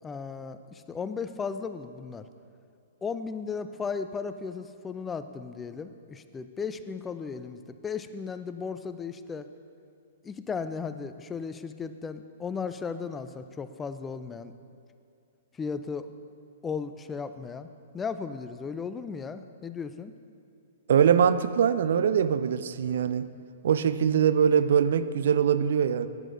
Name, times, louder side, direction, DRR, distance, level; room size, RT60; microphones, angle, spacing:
voice 1, 0.0-2.3 3.0-9.5 10.2-14.5 15.5-16.1 16.6-17.7 17.9-20.1, left 5 dB, 15° left, 11 dB, 0.3 m, -35 dB
voice 2, 20.9-23.2 23.6-26.1, right 8 dB, 65° right, 13 dB, 0.3 m, -23 dB
10.5 x 9.4 x 2.5 m, 2.4 s
hypercardioid pair, 115°, 0 cm